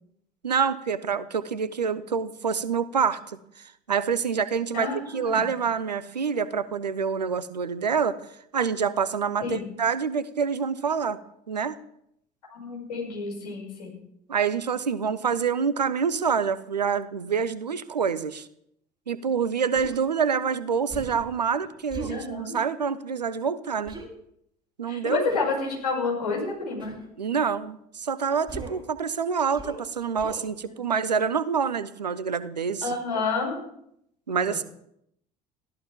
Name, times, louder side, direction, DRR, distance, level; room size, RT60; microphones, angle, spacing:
voice 1, 0.4-3.4 3.9-8.2 8.5-11.2 11.5-11.8 14.3-18.5 19.1-24.0 24.8-25.3 27.2-32.9 34.3-34.6, right 6 dB, 80° right, 17 dB, 0.8 m, -26 dB
voice 2, 4.7-5.4 9.4-9.6 12.5-13.9 22.1-22.6 24.9-26.9 32.8-33.7 34.4-34.6, left 4 dB, 75° left, -2 dB, 6.7 m, -29 dB
Human voice, 19.8-20.0 20.9-21.3 21.9-22.2 23.9-24.1 25.3-25.6 26.8-27.1 28.5-28.9 29.5-29.9 30.2-30.5, right 3 dB, 20° right, 3.6 m, -38 dB
22.0 x 15.5 x 3.7 m, 0.74 s
figure-of-eight pair, 60°, 21 cm